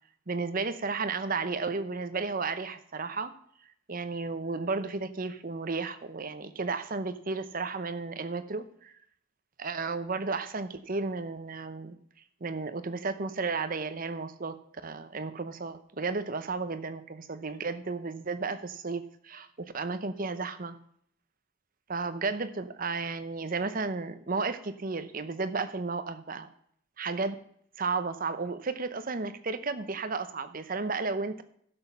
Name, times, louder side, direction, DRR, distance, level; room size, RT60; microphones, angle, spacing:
voice 1, 0.3-3.3 3.9-8.9 9.6-12.0 12.4-14.6 14.8-20.8 21.9-26.5 27.0-27.4 27.8-31.4, right 4 dB, 40° right, 10 dB, 0.8 m, -33 dB
12.0 x 7.2 x 5.6 m, 0.67 s
head